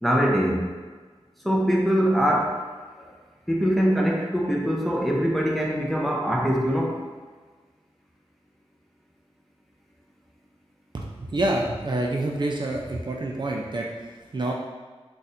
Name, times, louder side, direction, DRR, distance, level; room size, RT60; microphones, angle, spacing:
voice 1, 0.0-0.7 1.4-2.6 3.0-3.1 3.5-7.0, equal, ahead, -2 dB, 0.6 m, -23 dB
voice 2, 10.9-13.9 14.3-14.5, right 1 dB, 45° right, -1 dB, 0.4 m, -27 dB
2.6 x 2.4 x 4.1 m, 1.4 s
wide cardioid pair, 65°, 11 cm